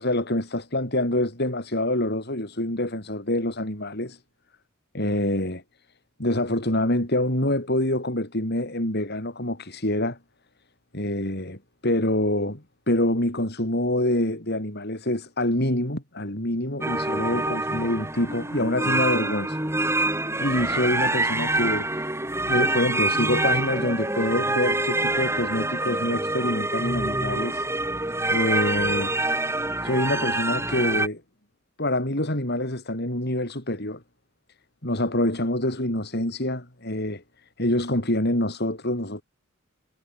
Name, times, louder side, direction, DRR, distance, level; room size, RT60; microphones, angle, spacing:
voice 1, 0.0-4.2 4.9-5.6 6.2-10.2 10.9-19.6 19.9-22.0 22.5-27.7 28.3-29.1 29.8-31.2 31.8-34.0 34.8-37.2 37.6-39.2, left 1 dB, 50° left, 5.5 m, -26 dB
sound 1, 16.8-31.1, right 2 dB, 15° right, 6.6 m, -26 dB
head